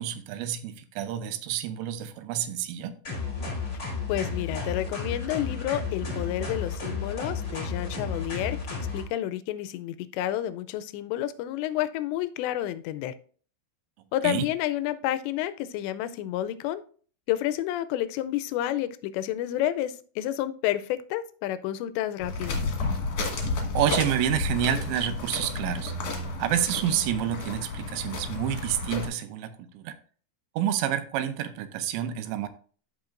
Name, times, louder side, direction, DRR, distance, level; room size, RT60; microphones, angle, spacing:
voice 1, 0.0-3.0 14.2-14.5 23.7-25.9 26.4-29.9 30.6-32.5, right 10 dB, 85° right, 10 dB, 3.0 m, -28 dB
sound 1, 3.0-9.0, left 4 dB, 40° left, 1.0 m, -32 dB
voice 2, 4.1-8.6 8.9-13.2 14.1-16.8 17.3-22.6, left 13 dB, 90° left, 13 dB, 2.8 m, -30 dB
sound 2, 22.2-29.1, left 3 dB, 55° left, 1.9 m, -31 dB
13.5 x 4.6 x 2.5 m, 0.43 s
omnidirectional pair, 5.0 m